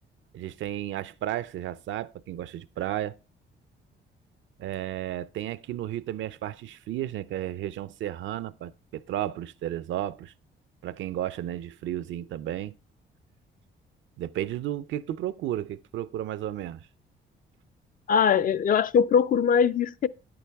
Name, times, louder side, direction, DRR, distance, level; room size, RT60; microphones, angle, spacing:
voice 1, 0.3-3.2 4.6-10.3 10.8-12.7 14.2-16.9, right 12 dB, 75° right, 0.5 m, -33 dB
voice 2, 18.1-20.1, left 7 dB, 45° left, 0.4 m, -21 dB
9.5 x 8.7 x 3.4 m
cardioid pair, 90°, 20 cm